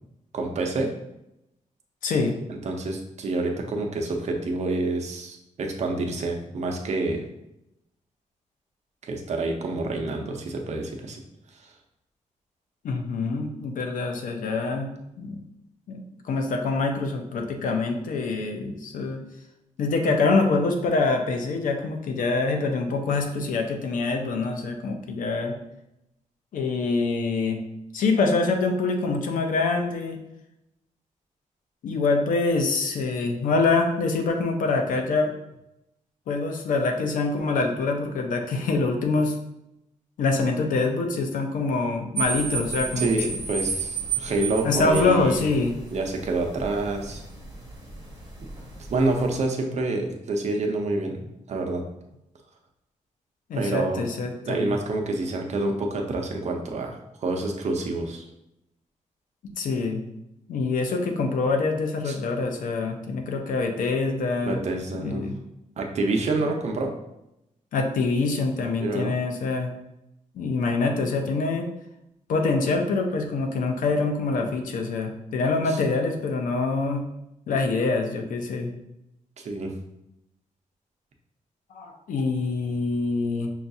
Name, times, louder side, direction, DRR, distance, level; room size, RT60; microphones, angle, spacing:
voice 1, 0.3-0.9 2.5-7.2 9.0-11.2 43.0-45.4 45.9-47.2 48.9-51.8 53.5-54.1 54.5-58.3 62.0-62.2 64.4-65.2 65.8-66.9 68.8-69.2 75.7-75.8 79.4-79.7, right 2 dB, 60° right, 2 dB, 0.6 m, -27 dB
voice 2, 2.0-2.4 12.8-15.4 15.9-19.2 19.8-25.6 26.5-27.6 27.9-30.2 31.8-35.3 36.3-39.4 40.2-43.3 44.6-45.7 53.5-54.8 59.4-60.0 60.5-64.6 64.9-65.4 67.7-69.7 70.3-71.7 72.3-77.0 77.5-78.7 81.7-83.5, left 3 dB, 90° left, 4 dB, 0.6 m, -25 dB
sound 1, 42.1-49.4, right 5 dB, 30° right, 1.0 m, -33 dB
5.6 x 2.3 x 2.6 m, 0.85 s
wide cardioid pair, 135°, 13 cm